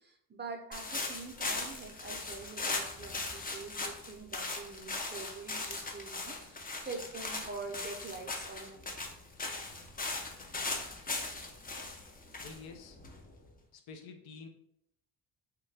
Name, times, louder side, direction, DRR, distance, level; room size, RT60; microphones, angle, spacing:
voice 1, 0.0-8.9, right 3 dB, 25° right, 3 dB, 0.5 m, -45 dB
sound 1, 0.7-13.5, left 3 dB, 20° left, 0.5 m, -39 dB
voice 2, 12.4-13.2 13.7-14.5, left 4 dB, 70° left, 5 dB, 0.6 m, -49 dB
3.6 x 2.2 x 3.2 m, 0.72 s
cardioid pair, 90°, 40 cm